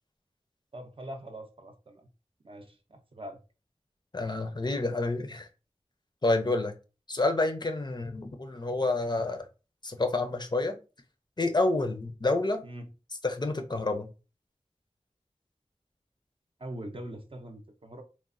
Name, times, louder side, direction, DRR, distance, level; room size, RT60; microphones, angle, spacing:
voice 1, 0.7-2.1 2.4-3.4 12.6-12.9 16.6-18.0, right 1 dB, 50° right, 0.5 m, -42 dB
voice 2, 4.1-5.5 6.2-6.7 7.1-9.5 9.8-10.8 11.4-12.6 13.2-14.1, left 2 dB, 40° left, 0.4 m, -28 dB
3.0 x 2.0 x 2.4 m
wide cardioid pair, 55°, 12 cm